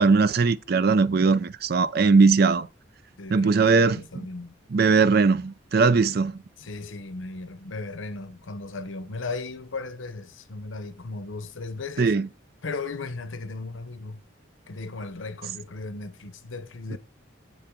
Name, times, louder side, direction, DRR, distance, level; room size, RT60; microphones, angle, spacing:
voice 1, 0.0-2.7 3.3-4.3 4.7-6.4 12.0-12.3, right 4 dB, 50° right, 0.4 m, -20 dB
voice 2, 3.2-4.5 6.6-12.2 12.6-14.2 14.7-17.0, left 3 dB, 75° left, 0.8 m, -36 dB
7.8 x 7.1 x 3.7 m
head